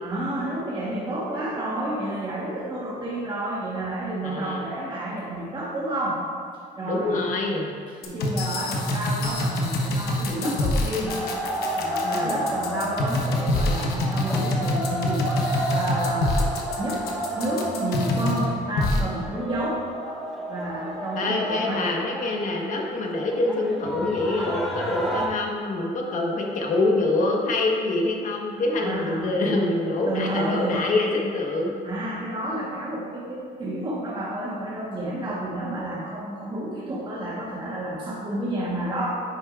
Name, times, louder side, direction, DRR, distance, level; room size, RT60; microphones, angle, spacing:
voice 1, 0.0-6.2 6.8-7.2 7.9-11.3 11.7-16.5 16.8-17.1 17.3-19.8 20.5-21.9 28.7-29.4 30.1-30.9 31.8-39.2, right 1 dB, 30° right, -6 dB, 1.3 m, -30 dB
voice 2, 4.2-4.6 6.8-7.7 12.0-12.3 21.2-31.7, left 2 dB, 50° left, 0 dB, 1.3 m, -25 dB
sound 1, 8.0-18.4 18.8-19.0, left 1 dB, 70° left, 1.1 m, -25 dB
sound 2, 11.1-25.3, equal, ahead, 0.9 m, -31 dB
9.8 x 6.3 x 2.5 m, 2.2 s
cardioid pair, 110°, 17 cm